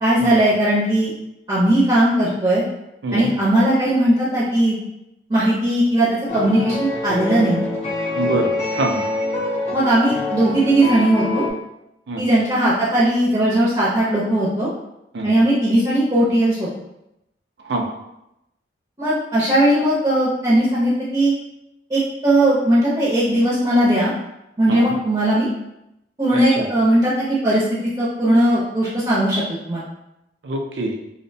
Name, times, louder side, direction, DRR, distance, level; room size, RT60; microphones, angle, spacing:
voice 1, 0.0-1.1 1.5-2.6 3.1-4.8 5.3-7.7 9.7-11.4 12.2-14.7 15.2-16.7 19.0-21.3 21.9-24.1 24.6-25.5 26.2-29.8, right 1 dB, 25° right, -9 dB, 0.6 m, -18 dB
sound 1, 6.3-11.5, left 2 dB, 35° left, 0.5 m, -25 dB
voice 2, 8.1-9.1 12.1-12.2 15.1-15.3 17.6-17.9 24.7-24.9 26.6-26.7 30.4-31.0, right 2 dB, 70° right, 3 dB, 0.4 m, -24 dB
2.5 x 2.1 x 2.6 m, 0.87 s
head